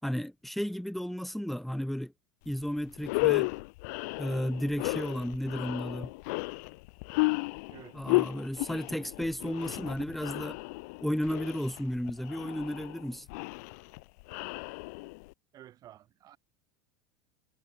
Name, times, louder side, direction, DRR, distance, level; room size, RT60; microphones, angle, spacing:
voice 1, 0.0-2.1 2.4-3.5 4.2-6.1 7.9-10.6 11.0-13.3, equal, ahead, 5.1 m, -33 dB
sound 1, 2.5-2.6 3.0-15.3, left 27 dB, 55° left, 2.4 m, -33 dB
voice 2, 15.5-16.4, right 12 dB, 35° right, 4.5 m, -51 dB
figure-of-eight pair, 75°, 11 cm